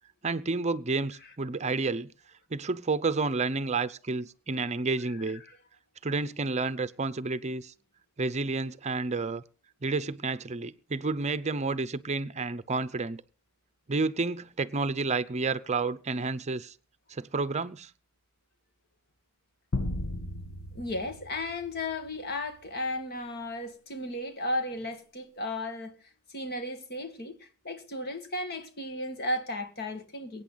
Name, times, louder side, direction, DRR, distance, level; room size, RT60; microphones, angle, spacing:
voice 1, 0.2-2.1 2.5-5.4 6.0-7.7 8.2-9.4 9.8-13.2 13.9-16.7 17.1-17.9, right 3 dB, 35° right, 0.6 m, -30 dB
voice 2, 5.1-5.6 20.7-26.0 26.3-30.4, left 1 dB, 50° left, 1.9 m, -35 dB
sound 1, 19.7-22.3, left 2 dB, 85° left, 1.2 m, -35 dB
23.5 x 9.1 x 4.0 m
head